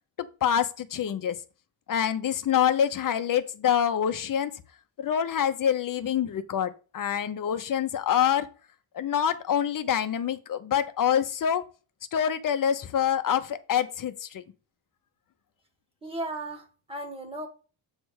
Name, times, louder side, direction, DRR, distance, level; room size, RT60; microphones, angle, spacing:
voice 1, 0.2-1.4 1.9-4.5 5.0-8.5 8.9-11.6 12.1-14.4, left 9 dB, 45° left, 0.8 m, -26 dB
voice 2, 16.0-17.5, right 2 dB, 10° right, 1.6 m, -36 dB
8.0 x 3.4 x 6.3 m
wide cardioid pair, 175°, 44 cm